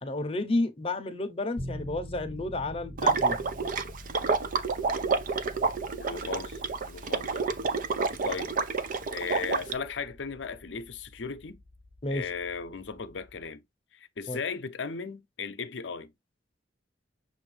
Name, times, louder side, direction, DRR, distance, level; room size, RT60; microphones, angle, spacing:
voice 1, 0.0-3.4 12.0-12.3 14.3-14.4, left 2 dB, 30° left, 0.7 m, -31 dB
sound 1, 1.6-13.4, equal, 30° right, 1.4 m, -46 dB
Water / Liquid, 3.0-9.7, right 4 dB, 50° right, 0.5 m, -29 dB
voice 2, 6.0-6.6 6.9-7.4 8.2-8.5 9.1-11.6 12.1-13.6 13.9-16.1, left 5 dB, 80° left, 0.6 m, -36 dB
6.3 x 2.6 x 3.2 m
head